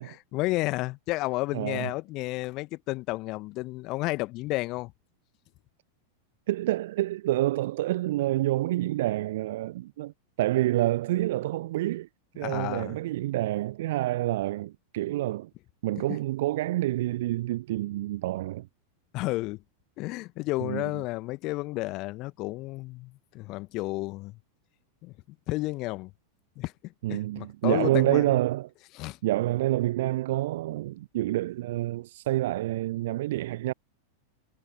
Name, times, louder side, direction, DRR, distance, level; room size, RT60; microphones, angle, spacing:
voice 1, 0.0-4.9 12.4-13.0 19.1-19.6 20.0-24.4 25.0-25.1 25.5-26.1 26.6-28.2 29.0-29.2, left 21 dB, 40° left, 1.5 m, -32 dB
voice 2, 1.5-1.9 6.5-10.1 10.4-12.1 12.4-15.5 15.8-18.7 20.6-20.9 27.0-28.7 29.2-33.7, right 16 dB, 55° right, 0.4 m, -28 dB
figure-of-eight pair, 90°, 0 cm